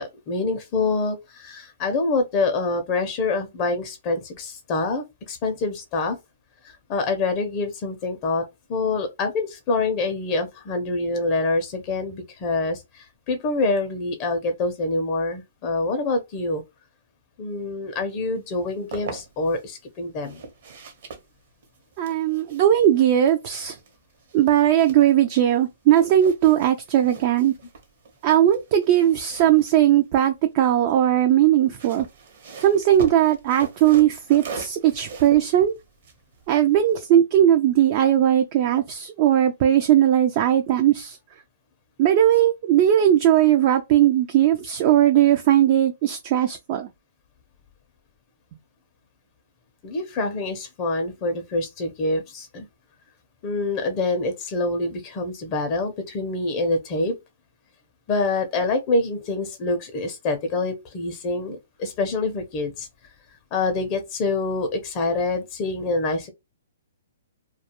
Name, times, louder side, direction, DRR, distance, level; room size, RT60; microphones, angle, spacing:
voice 1, 0.0-6.2 6.6-8.4 8.7-16.6 17.4-20.4 49.8-52.7 53.4-57.1 58.1-62.9 63.5-66.3, left 3 dB, 30° left, 0.5 m, -26 dB
sound 1, 18.5-19.6 20.2-25.6 25.9-30.5 31.5-37.1, right 4 dB, 55° right, 0.8 m, -41 dB
voice 2, 22.0-23.8 24.3-27.5 28.2-32.1 32.6-35.7 36.5-41.2 42.0-46.9, right 11 dB, 35° right, 0.3 m, -18 dB
2.3 x 2.2 x 2.8 m
hypercardioid pair, 160°, 0 cm